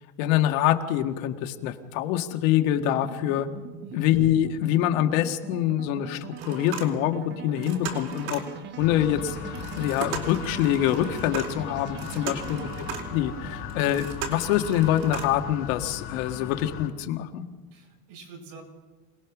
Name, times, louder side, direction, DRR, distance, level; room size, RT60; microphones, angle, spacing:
voice 1, 0.2-3.5 3.9-8.4 8.8-12.7 13.1-17.4, left 12 dB, 65° left, 6 dB, 1.8 m, -25 dB
sound 1, 0.8-17.2, right 6 dB, 25° right, 1.1 m, -43 dB
sound 2, 6.4-7.3 7.6-8.6 9.5-13.2 13.7-15.5 15.9-16.0 16.4-16.5, right 6 dB, 75° right, 4.3 m, -37 dB
sound 3, 8.8-16.9, left 8 dB, 30° left, 2.1 m, -38 dB
voice 2, 12.3-12.7 17.7-18.6, right 4 dB, 50° right, 2 dB, 6.3 m, -46 dB
27.0 x 19.0 x 6.1 m, 1.3 s
supercardioid pair, 155°, 43 cm